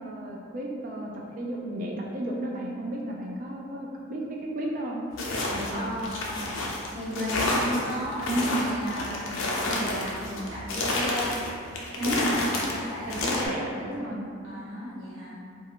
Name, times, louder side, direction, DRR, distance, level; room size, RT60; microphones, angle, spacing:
voice 1, 0.0-5.0 5.5-5.9 7.1-7.4 8.3-8.5 12.0-12.4 13.0-14.2, right 1 dB, 40° right, -2 dB, 0.3 m, -33 dB
sound 1, 5.1-13.5, left 2 dB, 60° left, 0.4 m, -30 dB
voice 2, 5.7-6.5 6.9-11.4 11.9-14.2 14.4-15.4, equal, 60° right, -10 dB, 0.8 m, -35 dB
2.4 x 2.3 x 2.8 m, 2.3 s
head